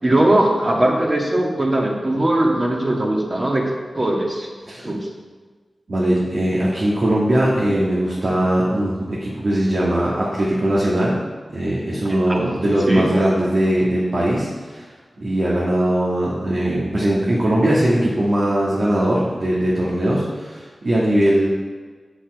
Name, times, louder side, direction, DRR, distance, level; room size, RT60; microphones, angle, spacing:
voice 1, 0.0-3.6 4.0-4.5 4.8-5.1 12.1-12.4 12.9-13.1, right 1 dB, 35° right, -1 dB, 1.8 m, -19 dB
voice 2, 5.9-11.2 11.5-14.9 15.2-21.5, right 1 dB, 60° right, -6 dB, 1.7 m, -20 dB
7.2 x 7.0 x 4.7 m, 1.4 s
wide cardioid pair, 60°, 0 cm